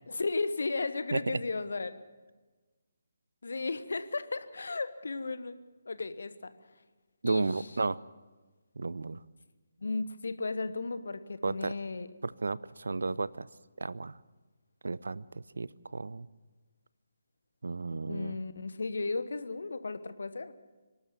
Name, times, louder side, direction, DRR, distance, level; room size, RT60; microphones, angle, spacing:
voice 1, 0.1-1.9 3.4-5.6 5.8-6.5 7.2-7.7 9.8-12.1 17.9-20.5, left 3 dB, 60° left, 13 dB, 1.2 m, -35 dB
voice 2, 7.2-8.0 8.8-9.2 11.4-11.7 12.2-13.5 13.8-14.2 14.8-16.3 17.6-18.4, right 3 dB, 65° right, 20 dB, 0.6 m, -33 dB
24.5 x 12.5 x 8.5 m, 1.3 s
figure-of-eight pair, 145°, 0 cm